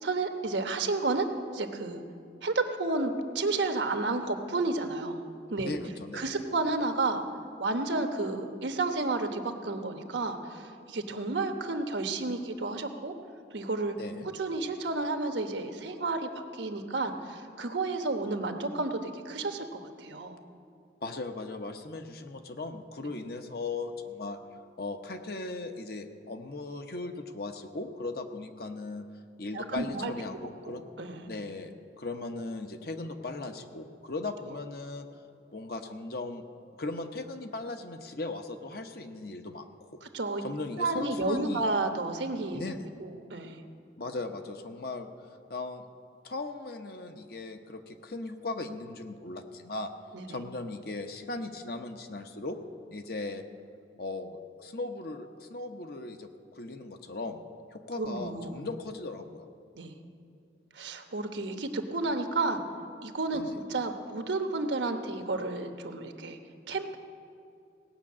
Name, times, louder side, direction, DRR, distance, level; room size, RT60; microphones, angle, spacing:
voice 1, 0.0-1.2 1.5-2.0 2.4-5.2 5.5-5.7 6.1-7.2 7.6-13.1 13.5-13.9 14.3-20.4 29.5-30.1 30.7-31.3 40.0-40.4 40.8-42.6 43.0-43.6 50.1-50.4 58.0-58.6 59.8-59.9 60.7-62.6 63.0-66.4 66.7-67.0, right 3 dB, 80° right, 6 dB, 1.1 m, -31 dB
voice 2, 5.6-6.4 14.0-14.3 21.0-24.4 24.8-29.1 29.4-30.8 31.3-35.1 35.5-36.4 36.8-40.0 40.4-41.6 42.5-42.9 44.0-45.1 45.5-45.8 46.2-49.9 50.3-52.6 52.9-53.5 54.0-57.4 57.7-59.5 63.3-63.6, left 3 dB, 55° left, 6 dB, 0.9 m, -38 dB
17.5 x 6.4 x 8.6 m, 2.5 s
head